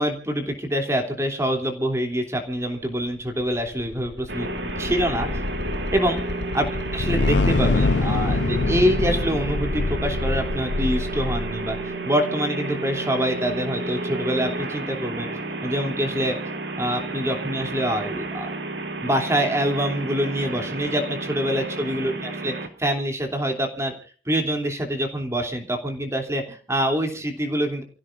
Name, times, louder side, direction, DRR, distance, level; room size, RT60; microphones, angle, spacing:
voice 1, 0.0-4.5 4.8-5.4 5.9-6.2 6.5-15.3 15.6-16.4 16.8-18.5 19.0-22.5 22.8-23.9 24.3-27.8, equal, 15° right, 4 dB, 3.0 m, -25 dB
sound 1, 3.5-11.9, left 3 dB, 85° left, 0.7 m, -25 dB
sound 2, 4.3-22.7, right 2 dB, 80° right, 2.9 m, -31 dB
29.5 x 15.5 x 2.6 m, 0.39 s
head